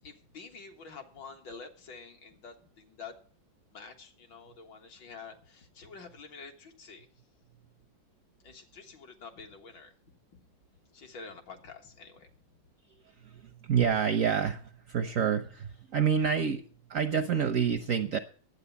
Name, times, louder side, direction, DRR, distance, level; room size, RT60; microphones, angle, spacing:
voice 1, 0.0-3.1 3.7-7.1 8.4-9.9 10.3-10.4 10.9-12.3, left 5 dB, 70° left, 4 dB, 2.2 m, -48 dB
voice 2, 13.0-16.6 16.9-18.2, right 7 dB, 65° right, 9 dB, 0.8 m, -28 dB
10.5 x 8.3 x 6.9 m, 0.42 s
omnidirectional pair, 2.1 m